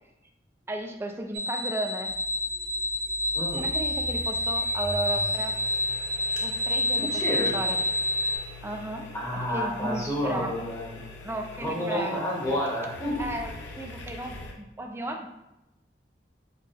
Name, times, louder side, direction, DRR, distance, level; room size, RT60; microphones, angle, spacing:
voice 1, 0.7-2.1 2.5-2.9 3.5-5.6 6.4-8.1 8.6-10.6 11.2-12.2 12.8-12.9 13.2-15.3, right 2 dB, 15° right, 4 dB, 0.3 m, -35 dB
sound 1, 1.3-8.4, left 2 dB, 90° right, 0.7 m, -28 dB
sound 2, 2.0-14.5, left 2 dB, 80° left, 0.6 m, -43 dB
voice 2, 3.3-3.7 6.9-7.5 9.1-11.0 11.6-13.2, equal, 20° left, -5 dB, 0.8 m, -30 dB
4.3 x 2.0 x 3.3 m, 0.92 s
head